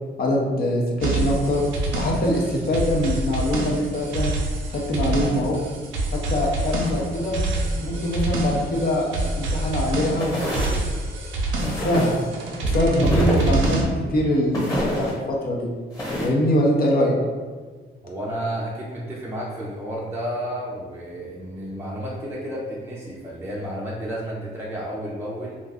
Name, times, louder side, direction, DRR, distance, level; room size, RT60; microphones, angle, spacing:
voice 1, 0.2-1.6 1.9-4.3 4.7-5.6 6.1-7.3 7.8-10.4 11.6-12.1 12.6-13.8 14.1-15.7 16.2-17.1, equal, 50° left, -1 dB, 0.6 m, -23 dB
sound 1, 1.0-13.8, right 1 dB, 75° right, 0.5 m, -26 dB
sound 2, 6.7-11.4, left 3 dB, 85° left, 0.7 m, -37 dB
sound 3, 10.2-10.8 11.6-12.2 13.0-13.7 14.5-15.1 15.9-16.3, equal, 15° left, 1.1 m, -27 dB
voice 2, 18.0-25.5, equal, 10° right, -6 dB, 0.5 m, -31 dB
2.5 x 2.2 x 3.4 m, 1.4 s
cardioid pair, 90°, 20 cm